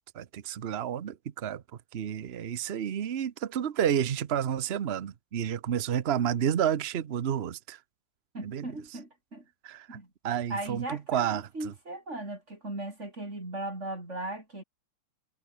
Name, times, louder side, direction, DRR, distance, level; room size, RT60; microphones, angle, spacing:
voice 1, 0.1-1.6 1.9-7.8 8.4-8.7 9.6-10.0 10.2-11.7, right 9 dB, 80° right, 0.5 m, -30 dB
voice 2, 8.3-9.4 9.9-10.1 10.5-14.6, right 2 dB, 30° right, 6.5 m, -37 dB
omnidirectional pair, 2.4 m